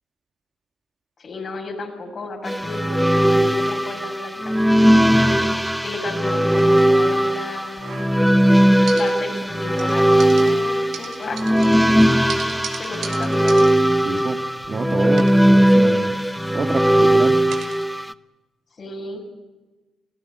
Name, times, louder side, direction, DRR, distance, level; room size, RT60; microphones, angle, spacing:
voice 1, 1.2-8.0 8.9-11.7 12.8-13.7 18.7-19.2, left 3 dB, 50° left, 2 dB, 7.2 m, -33 dB
sound 1, 2.4-18.1, right 1 dB, ahead, 0.8 m, -18 dB
sound 2, 6.4-8.5 8.9-9.5 9.8-14.8 15.1-17.9, right 7 dB, 60° right, 2.4 m, -39 dB
Wind instrument woodwind instrument, 10.7-14.8, left 5 dB, 75° left, 6.7 m, -48 dB
voice 2, 14.0-14.4 14.7-16.2 16.5-17.4, right 4 dB, 40° right, 6 dB, 1.8 m, -27 dB
24.0 x 17.0 x 9.2 m, 1.2 s
hypercardioid pair, 45°, 0 cm